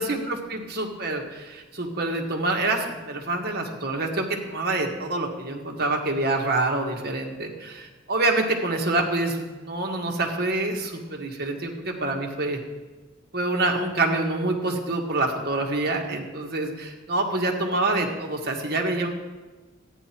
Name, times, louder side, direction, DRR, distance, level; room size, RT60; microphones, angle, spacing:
voice 1, 0.0-12.6 13.3-19.1, right 2 dB, 55° right, 1 dB, 1.7 m, -26 dB
13.5 x 9.6 x 4.5 m, 1.3 s
head